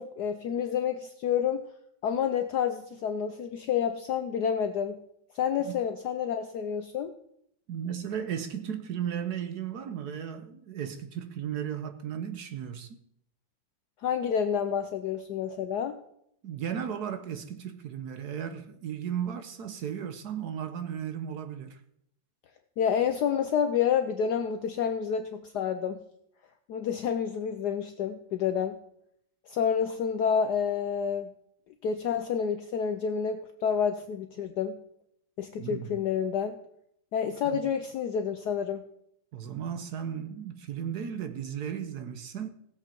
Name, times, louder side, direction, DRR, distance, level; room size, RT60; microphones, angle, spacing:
voice 1, 0.0-1.6 2.0-5.0 5.3-7.1 14.0-16.0 22.8-26.0 26.7-28.7 29.5-31.3 31.8-34.8 35.4-36.6 37.1-38.8, left 7 dB, 65° left, 1.1 m, -29 dB
voice 2, 7.7-13.0 16.4-21.8 35.6-36.0 37.4-37.6 39.3-42.5, right 8 dB, 60° right, 1.2 m, -35 dB
17.0 x 7.9 x 4.4 m
omnidirectional pair, 2.1 m